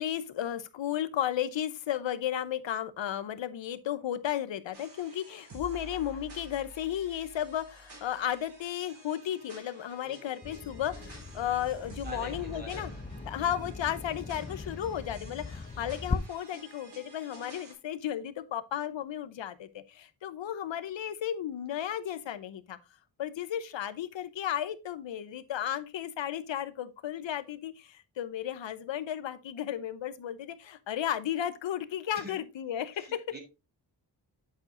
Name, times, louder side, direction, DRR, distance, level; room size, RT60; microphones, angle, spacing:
voice 1, 0.0-12.9 13.3-22.8 23.2-33.2, left 10 dB, 70° left, 0.9 m, -34 dB
sound 1, 4.7-17.7, right 2 dB, 55° right, 3.6 m, -50 dB
Bird vocalization bird call bird song, 10.4-16.2, left 4 dB, 20° left, 0.6 m, -40 dB
voice 2, 12.0-13.0 32.1-32.4 32.9-33.4, equal, 20° right, 2.6 m, -45 dB
8.2 x 6.7 x 2.6 m
cardioid pair, 75°, 46 cm